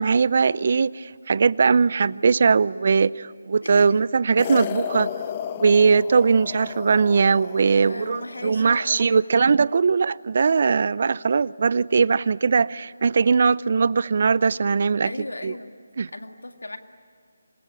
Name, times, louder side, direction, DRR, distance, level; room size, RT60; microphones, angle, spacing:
voice 1, 0.0-5.1 5.6-15.1 15.4-15.5 16.0-16.1, right 5 dB, 50° right, 0.6 m, -20 dB
sound 1, 4.4-8.8, left 8 dB, 30° left, 1.1 m, -33 dB
voice 2, 7.7-9.3 15.0-15.7 16.1-16.8, left 2 dB, 85° left, 2.1 m, -36 dB
27.0 x 22.0 x 9.8 m
figure-of-eight pair, 160°, 0 cm